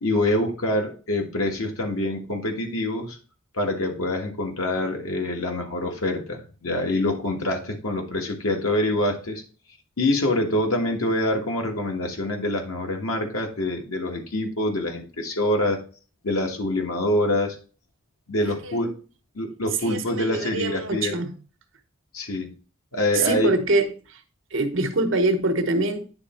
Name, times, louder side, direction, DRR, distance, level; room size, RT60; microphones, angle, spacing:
voice 1, 0.0-3.2 3.5-9.4 10.0-15.8 16.2-17.6 18.3-19.0 19.3-21.1 22.1-22.5 22.9-23.5, left 1 dB, 90° left, 1.6 m, -25 dB
voice 2, 19.8-21.3 23.1-24.2 24.5-26.0, right 2 dB, 65° right, 1.0 m, -24 dB
9.7 x 3.4 x 4.3 m
head